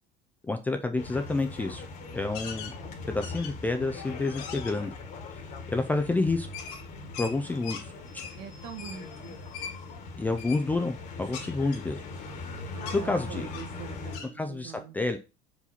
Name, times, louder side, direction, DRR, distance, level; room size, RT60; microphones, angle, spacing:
voice 1, 0.4-1.9 2.1-2.7 3.1-4.9 5.7-6.5 7.2-7.9 10.2-12.0 12.9-13.5 14.3-15.2, left 3 dB, 10° left, 6 dB, 0.4 m, -29 dB
sound 1, 1.0-14.2, left 3 dB, 40° left, 1.4 m, -41 dB
sound 2, 2.3-2.8 3.2-3.7 4.2-4.7 6.5-7.9 8.2-8.4 8.8-9.0 9.5-9.7 10.4-10.6 11.3-12.5 12.8-13.0 13.5-13.7 14.1-14.3, left 7 dB, 80° left, 1.9 m, -40 dB
voice 2, 8.3-9.4 12.7-15.0, right 7 dB, 60° right, 4 dB, 1.5 m, -43 dB
5.3 x 4.9 x 4.2 m, 0.30 s
cardioid pair, 165°, 20 cm